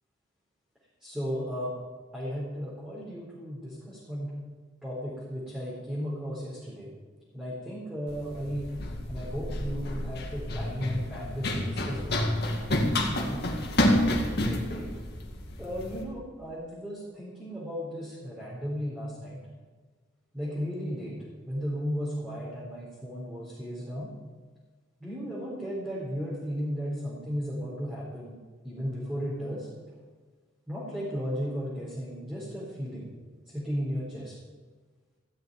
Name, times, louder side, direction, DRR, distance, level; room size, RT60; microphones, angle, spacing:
voice 1, 1.0-1.7 2.1-4.3 4.8-6.9 7.3-8.6 9.1-12.3 13.2-13.4 14.0-14.9 15.6-19.4 20.3-21.2 21.4-24.1 25.0-28.4 28.6-29.7 30.7-33.1 33.5-34.3, equal, 5° right, -8 dB, 4.1 m, -35 dB
Run, 8.1-16.0, left 1 dB, 55° left, 2.2 m, -29 dB
15.5 x 7.8 x 9.6 m, 1.4 s
head